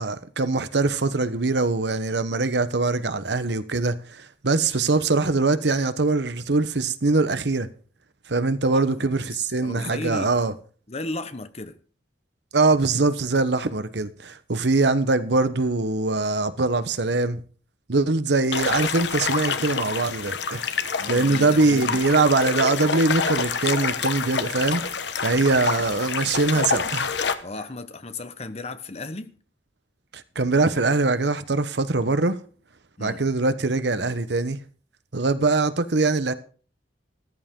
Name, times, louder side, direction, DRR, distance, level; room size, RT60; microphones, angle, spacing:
voice 1, 0.0-7.7 8.3-10.5 12.5-17.4 17.9-20.6 21.1-24.9 25.2-27.1 30.1-32.4 33.0-34.6 35.1-36.3, right 3 dB, 70° right, 1.0 m, -22 dB
voice 2, 8.7-10.3 10.9-11.8 21.0-22.0 25.3-25.6 27.4-29.4 33.0-33.2, left 2 dB, 35° left, 1.1 m, -35 dB
sound 1, 18.5-27.3, left 5 dB, 75° left, 1.1 m, -27 dB
14.0 x 14.0 x 3.7 m
head